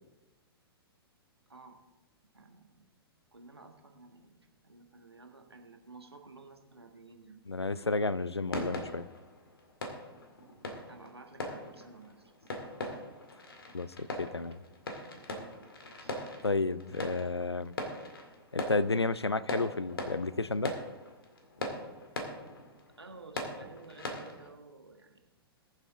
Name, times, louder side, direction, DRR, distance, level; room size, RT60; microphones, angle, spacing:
voice 1, 2.3-2.9 3.3-7.4 10.8-12.5 16.0-16.5 23.0-25.2, right 3 dB, 80° right, 4 dB, 1.6 m, -53 dB
voice 2, 7.5-9.1 13.7-14.6 16.4-17.8 18.5-20.7, left 3 dB, 85° left, 17 dB, 0.5 m, -31 dB
sound 1, 8.5-24.5, left 2 dB, 65° left, 2.1 m, -41 dB
20.0 x 7.5 x 3.7 m, 1.0 s
figure-of-eight pair, 110°, 13 cm